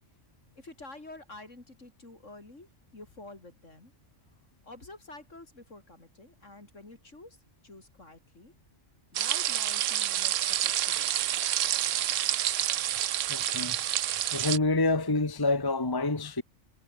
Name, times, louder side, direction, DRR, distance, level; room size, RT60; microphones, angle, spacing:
voice 1, 0.6-3.9 4.6-8.5 9.1-11.4, left 2 dB, 70° left, 5.2 m, -49 dB
sound 1, 9.1-14.6, right 12 dB, 75° right, 1.0 m, -28 dB
voice 2, 13.3-13.8 14.3-16.4, left 2 dB, 20° left, 1.3 m, -27 dB
omnidirectional pair, 1.3 m